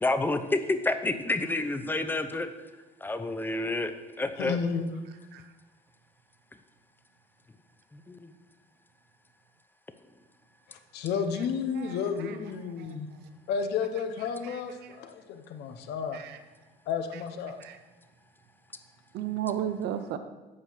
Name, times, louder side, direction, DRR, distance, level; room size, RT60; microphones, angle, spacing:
voice 1, 0.0-2.5 3.0-3.9 4.2-4.6 7.9-8.3, left 2 dB, 10° left, 9 dB, 0.7 m, -29 dB
voice 2, 4.4-5.0 10.7-13.1 13.5-16.2 16.9-17.6, left 6 dB, 75° left, 7 dB, 1.0 m, -32 dB
voice 3, 11.8-12.4 12.8-12.9 14.4-14.9 16.1-16.4 17.6-17.8 19.1-20.2, right 10 dB, 75° right, 9 dB, 0.7 m, -35 dB
8.6 x 4.6 x 7.3 m, 1.2 s
cardioid pair, 110°, 17 cm